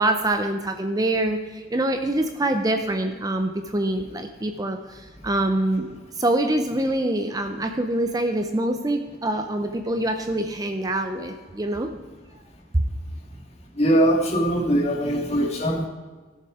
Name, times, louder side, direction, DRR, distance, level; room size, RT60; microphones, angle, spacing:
voice 1, 0.0-11.9 12.7-12.8, right 1 dB, 20° right, 6 dB, 0.6 m, -25 dB
voice 2, 13.8-15.9, right 1 dB, 35° left, 1 dB, 1.7 m, -21 dB
16.5 x 6.9 x 4.9 m, 1.4 s
head